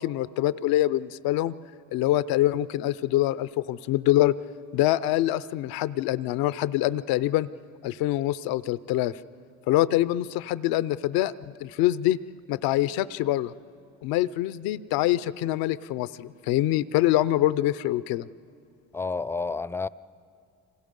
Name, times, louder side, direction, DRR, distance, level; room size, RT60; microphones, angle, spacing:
voice 1, 0.0-1.5 1.9-4.3 4.7-7.5 7.8-9.1 9.7-12.2 12.5-13.5 14.0-18.3, left 14 dB, 85° left, 17 dB, 0.6 m, -25 dB
voice 2, 18.9-19.9, left 4 dB, 5° left, 18 dB, 0.5 m, -30 dB
28.5 x 26.0 x 5.3 m, 2.5 s
supercardioid pair, 60°, 35 cm